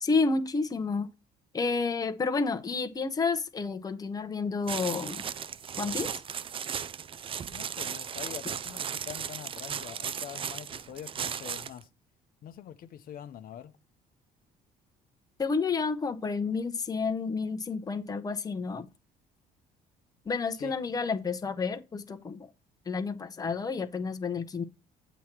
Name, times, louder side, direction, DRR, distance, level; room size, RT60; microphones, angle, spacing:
voice 1, 0.0-1.1 1.5-5.2 5.8-6.1 15.4-18.9 20.3-22.5 22.9-24.6, left 4 dB, 20° left, 0.8 m, -30 dB
sound 1, 4.7-11.8, right 8 dB, 30° right, 0.4 m, -36 dB
voice 2, 7.5-11.9 12.4-13.8 20.5-20.7, left 10 dB, 60° left, 0.7 m, -44 dB
8.2 x 2.9 x 5.9 m
cardioid pair, 110°, 17 cm